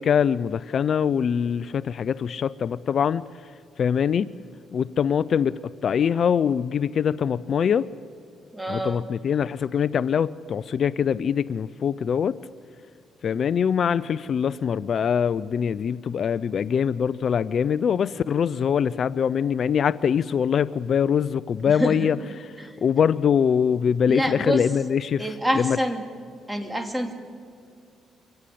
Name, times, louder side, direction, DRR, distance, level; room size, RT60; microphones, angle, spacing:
voice 1, 0.0-3.2 3.8-4.3 4.7-7.9 8.7-12.4 13.2-25.3 25.5-25.8, left 7 dB, 55° left, 17 dB, 0.5 m, -23 dB
voice 2, 8.5-9.1 21.7-22.1 22.6-22.7 24.1-24.6 25.2-26.0 26.5-27.1, equal, 10° right, 6 dB, 2.8 m, -26 dB
25.0 x 17.5 x 8.6 m, 2.3 s
cardioid pair, 90°, 0 cm